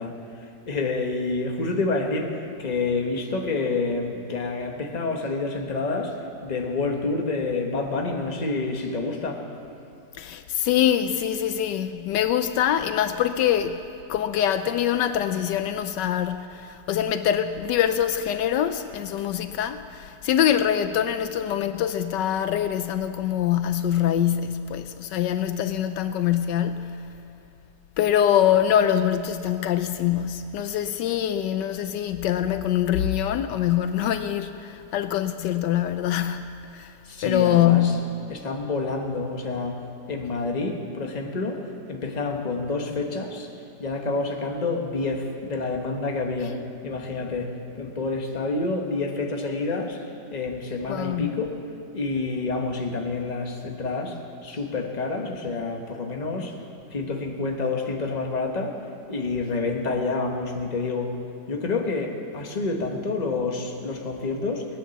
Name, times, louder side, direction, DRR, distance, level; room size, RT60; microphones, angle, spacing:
voice 1, 0.0-9.4 37.0-38.0 38.3-39.8 40.1-43.5 43.8-50.0 50.3-51.6 51.9-56.5 56.9-58.8 59.1-61.1 61.5-64.7, left 3 dB, 25° left, 1.3 m, -28 dB
voice 2, 10.2-13.8 14.1-27.1 28.0-36.9 37.2-38.0 50.9-51.3, left 10 dB, 80° left, 1.2 m, -24 dB
19.5 x 9.7 x 7.2 m
omnidirectional pair, 1.9 m